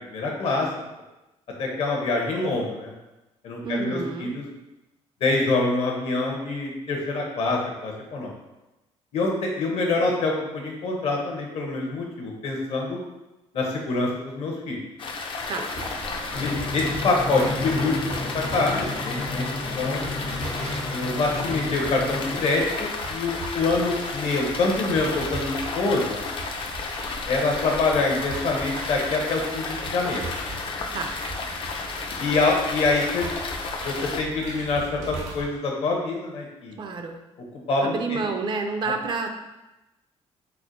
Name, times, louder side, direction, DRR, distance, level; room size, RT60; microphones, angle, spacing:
voice 1, 0.1-0.7 1.6-2.9 3.4-4.5 5.2-8.3 9.1-13.0 13.5-14.8 16.4-18.0 18.3-19.5 19.8-20.1 20.9-26.2 27.3-30.2 32.2-33.3 33.8-36.8 37.7-38.2, left 3 dB, 65° left, -1 dB, 0.8 m, -25 dB
voice 2, 3.6-4.4 15.5-15.7 30.9-31.1 36.8-37.2 37.8-39.3, right 4 dB, 40° right, 4 dB, 0.4 m, -29 dB
sound 1, 15.0-34.2, left 4 dB, 45° left, 0.4 m, -33 dB
sound 2, 15.7-35.4, right 1 dB, 90° right, 0.8 m, -39 dB
Drum, 16.3-22.4, left 2 dB, 85° left, 1.1 m, -32 dB
4.3 x 2.1 x 2.6 m, 1.0 s
cardioid pair, 115°, 12 cm